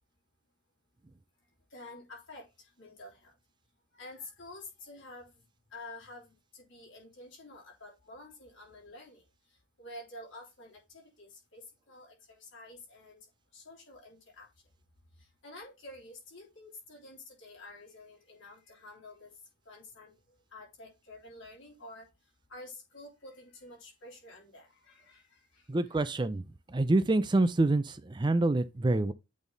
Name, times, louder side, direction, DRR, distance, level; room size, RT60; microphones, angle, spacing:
voice 1, 1.7-3.3 3.9-5.3 5.7-9.2 9.8-13.3 13.5-14.5 15.2-19.3 19.7-20.1 20.5-22.1 22.5-26.0, left 2 dB, 60° left, 3.5 m, -49 dB
voice 2, 25.7-29.1, right 2 dB, 20° right, 0.4 m, -27 dB
8.3 x 3.5 x 3.9 m
head